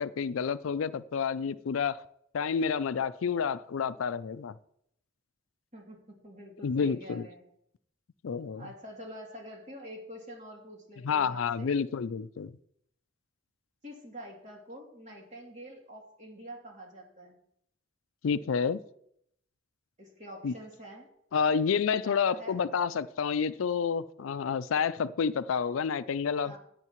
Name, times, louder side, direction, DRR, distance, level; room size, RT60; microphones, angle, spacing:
voice 1, 0.0-2.0 2.3-4.5 6.6-7.3 8.2-8.7 11.0-12.6 18.2-18.8 20.4-20.5 21.3-26.6, left 6 dB, 80° left, 15 dB, 0.4 m, -29 dB
voice 2, 5.7-7.4 8.6-11.7 13.8-17.4 20.0-21.1 22.0-22.6 26.4-26.6, equal, 35° right, -1 dB, 2.8 m, -46 dB
15.5 x 9.0 x 3.1 m, 0.74 s
head